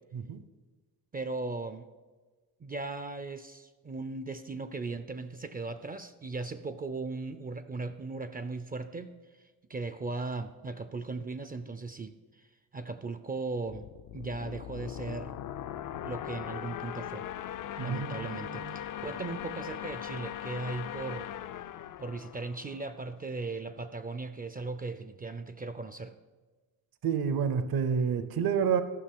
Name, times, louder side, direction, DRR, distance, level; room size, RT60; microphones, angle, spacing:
voice 1, 1.1-1.9 2.6-9.2 9.7-12.5 12.7-13.9 14.1-15.4 16.0-17.3 17.8-21.3 22.0-26.1, right 3 dB, 25° right, 11 dB, 0.4 m, -37 dB
sound 1, 13.7-23.2, left 11 dB, 55° left, 0.5 m, -40 dB
voice 2, 17.8-18.8 27.0-28.8, right 7 dB, 65° right, 12 dB, 0.8 m, -29 dB
13.5 x 6.1 x 7.7 m, 1.3 s
wide cardioid pair, 155°, 38 cm